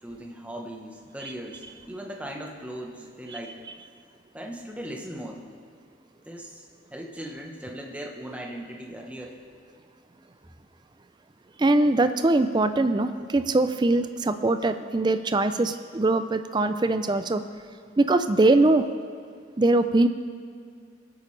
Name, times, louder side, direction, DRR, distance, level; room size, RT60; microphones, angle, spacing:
voice 1, 0.0-3.6 4.3-5.5 6.2-9.4, equal, 5° right, 0 dB, 1.0 m, -38 dB
voice 2, 11.6-17.4 18.0-18.9 19.6-20.1, right 2 dB, 20° right, 10 dB, 0.4 m, -22 dB
22.5 x 8.5 x 3.3 m, 2.2 s
head